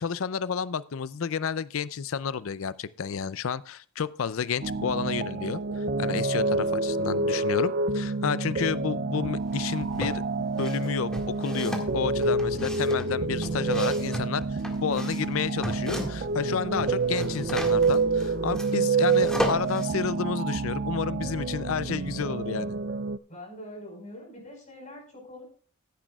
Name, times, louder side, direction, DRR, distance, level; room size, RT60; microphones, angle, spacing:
voice 1, 0.0-22.8, left 6 dB, 65° left, 17 dB, 0.5 m, -31 dB
sound 1, 4.6-23.2, right 3 dB, 45° right, 0.4 m, -28 dB
sound 2, 9.5-10.2 10.6-16.4 16.6-19.8, equal, 5° left, 1.8 m, -35 dB
voice 2, 23.3-25.4, left 1 dB, 35° left, 1 dB, 4.8 m, -43 dB
15.0 x 10.5 x 2.4 m, 0.42 s
head